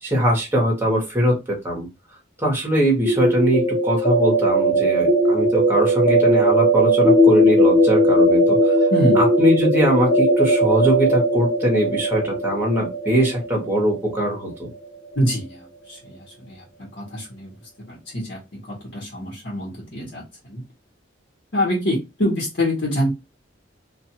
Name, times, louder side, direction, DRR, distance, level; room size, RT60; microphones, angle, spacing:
voice 1, 0.0-1.9 2.4-8.8 9.2-14.7, equal, 10° right, -2 dB, 1.2 m, -21 dB
sound 1, 3.0-14.8, right 1 dB, 25° left, 1.2 m, -18 dB
voice 2, 8.9-9.2 15.1-17.5 17.9-20.6 21.5-23.1, equal, 65° left, -5 dB, 1.2 m, -25 dB
2.5 x 2.5 x 2.8 m, 0.24 s
head